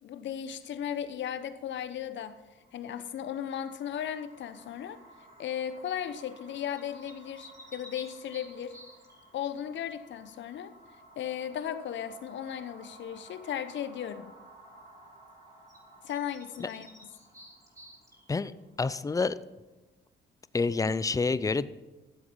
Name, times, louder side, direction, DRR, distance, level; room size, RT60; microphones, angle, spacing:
voice 1, 0.0-2.4 2.7-5.0 5.4-8.8 9.3-10.7 11.2-14.3 16.0-16.9, left 9 dB, 65° left, 0.9 m, -36 dB
sound 1, 2.4-19.5, right 1 dB, 35° right, 3.8 m, -56 dB
sound 2, 4.5-4.9 6.7-9.3 15.7-15.8 16.1-18.5, right 1 dB, 15° right, 2.7 m, -52 dB
voice 2, 18.3-19.4 20.5-21.7, left 4 dB, 15° left, 0.5 m, -28 dB
13.5 x 7.8 x 5.5 m
cardioid pair, 90°, 20 cm